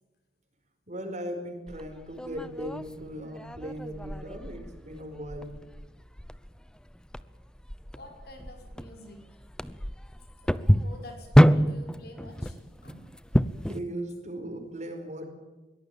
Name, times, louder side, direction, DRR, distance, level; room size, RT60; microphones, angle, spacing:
voice 1, 0.9-5.5 12.4-12.6 13.6-15.3, right 1 dB, 40° right, 6 dB, 4.8 m, -38 dB
sound 1, 1.7-13.8, equal, 5° left, 0.7 m, -27 dB
voice 2, 7.9-9.4 10.4-13.2, left 1 dB, 60° left, 4 dB, 6.3 m, -48 dB
23.0 x 18.0 x 9.0 m, 1.2 s
head